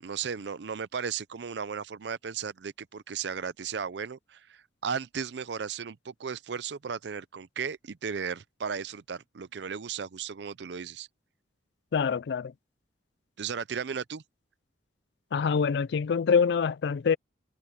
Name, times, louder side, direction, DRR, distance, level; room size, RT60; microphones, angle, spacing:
voice 1, 0.0-11.1 13.4-14.2, right 6 dB, 65° right, 0.5 m, -35 dB
voice 2, 11.9-12.5 15.3-17.2, left 6 dB, 60° left, 0.4 m, -25 dB
head